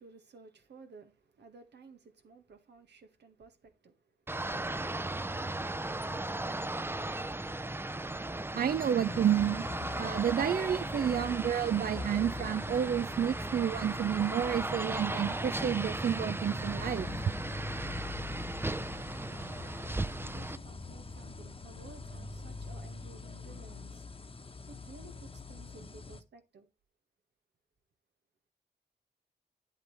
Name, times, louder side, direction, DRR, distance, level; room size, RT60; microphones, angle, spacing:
voice 1, 0.0-5.4 20.3-24.1 24.7-26.7, right 4 dB, 90° right, 1.9 m, -55 dB
sound 1, 4.3-20.6, right 2 dB, 15° right, 0.5 m, -36 dB
voice 2, 8.5-9.7 10.0-17.1, right 9 dB, 60° right, 0.4 m, -30 dB
sound 2, 9.0-26.2, left 3 dB, 35° left, 1.0 m, -44 dB
9.2 x 8.3 x 3.4 m
cardioid pair, 70°, 17 cm